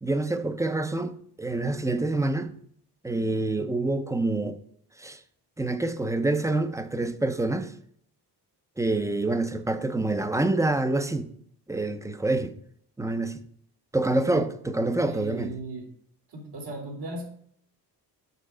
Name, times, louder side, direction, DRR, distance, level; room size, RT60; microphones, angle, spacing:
voice 1, 0.0-2.5 3.0-4.6 5.0-5.2 5.6-7.7 8.8-11.3 11.7-12.5 13.0-13.4 13.9-15.5, right 2 dB, 10° right, 0.5 m, -27 dB
voice 2, 15.1-15.8 16.3-17.2, right 2 dB, 80° right, 3.2 m, -37 dB
6.7 x 6.6 x 5.0 m
wide cardioid pair, 145°, 40 cm